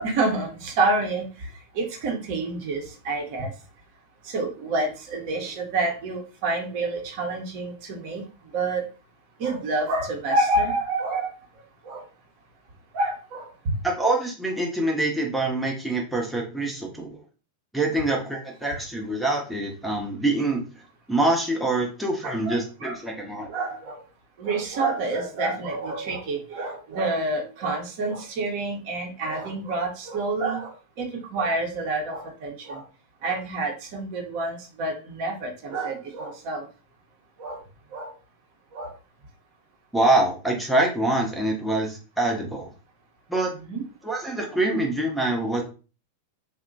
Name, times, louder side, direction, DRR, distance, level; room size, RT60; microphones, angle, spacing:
voice 1, 0.0-3.5 4.2-8.2 8.5-8.9 9.4-11.3 11.8-12.0 12.9-13.5 22.2-23.0 23.5-24.0 24.4-32.8 33.2-36.7 37.4-37.6 37.9-38.1 38.7-38.9 43.5-43.8, right 2 dB, 45° right, 2 dB, 0.7 m, -28 dB
voice 2, 13.8-17.2 17.7-20.6 21.1-23.5 39.9-42.7 43.3-43.5 44.0-45.6, right 2 dB, ahead, -1 dB, 0.6 m, -25 dB
2.8 x 2.1 x 2.6 m, 0.34 s
figure-of-eight pair, 90°, 0 cm